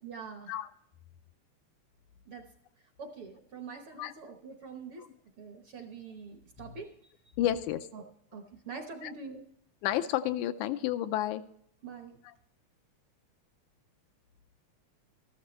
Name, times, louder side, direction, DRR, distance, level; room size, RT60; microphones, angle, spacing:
voice 1, 0.0-0.5 2.3-2.4 3.0-5.0 5.4-6.9 7.9-8.0 8.3-9.4 11.8-12.1, right 5 dB, 60° right, 4 dB, 1.5 m, -44 dB
voice 2, 7.4-7.9 9.0-9.1 9.8-11.4 12.2-12.3, left 12 dB, 80° left, 10 dB, 2.0 m, -31 dB
13.5 x 13.0 x 3.1 m, 0.68 s
omnidirectional pair, 3.5 m